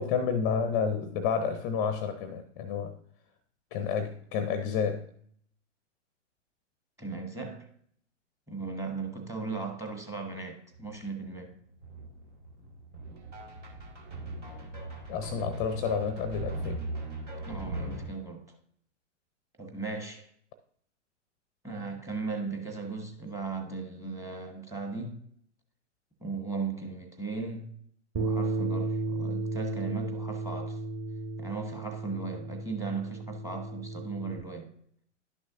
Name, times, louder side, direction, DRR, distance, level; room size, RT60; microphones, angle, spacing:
voice 1, 0.0-2.9 3.7-5.0 15.1-16.9, left 6 dB, 25° left, 0.5 m, -30 dB
voice 2, 7.0-7.7 8.5-11.6 17.5-18.4 19.6-20.3 21.6-25.3 26.2-27.8 28.2-30.8 31.4-34.7, right 4 dB, 10° right, 1.1 m, -37 dB
sound 1, 10.7-11.0 11.3-18.1, right 1 dB, 75° right, 1.9 m, -39 dB
Bass guitar, 28.1-34.4, right 2 dB, 25° right, 1.5 m, -34 dB
11.0 x 6.2 x 2.5 m
figure-of-eight pair, 110°, 37 cm